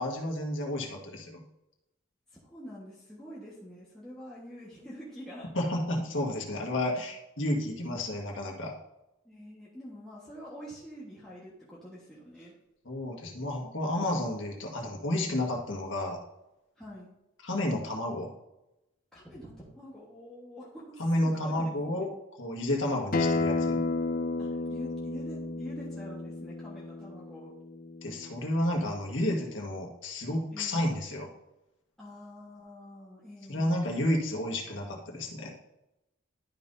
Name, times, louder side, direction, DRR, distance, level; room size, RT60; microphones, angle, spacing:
voice 1, 0.0-1.4 5.5-8.7 12.8-16.2 17.4-18.3 21.0-22.1 22.4-23.8 28.0-31.3 33.5-35.5, left 1 dB, 65° left, 0 dB, 1.6 m, -31 dB
voice 2, 2.3-5.5 9.2-12.5 16.8-17.1 19.1-21.7 24.4-27.5 30.5-31.0 32.0-34.1, equal, 5° left, -8 dB, 1.4 m, -46 dB
Acoustic guitar, 23.1-28.3, left 3 dB, 45° left, 0.6 m, -32 dB
11.5 x 5.5 x 2.7 m, 0.91 s
head